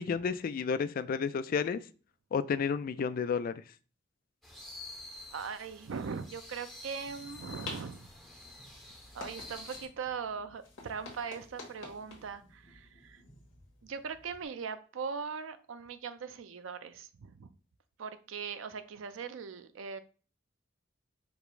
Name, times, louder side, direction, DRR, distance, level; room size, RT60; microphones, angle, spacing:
voice 1, 0.0-1.8 2.3-3.6, left 6 dB, 50° left, 13 dB, 0.3 m, -31 dB
sound 1, 4.4-9.9, left 2 dB, ahead, 0.8 m, -49 dB
voice 2, 5.3-8.1 9.1-13.2 13.8-17.5 18.0-20.0, right 6 dB, 85° right, 11 dB, 0.5 m, -40 dB
sound 2, 6.9-14.5, left 3 dB, 80° left, 1.4 m, -50 dB
5.1 x 2.0 x 4.6 m, 0.38 s
head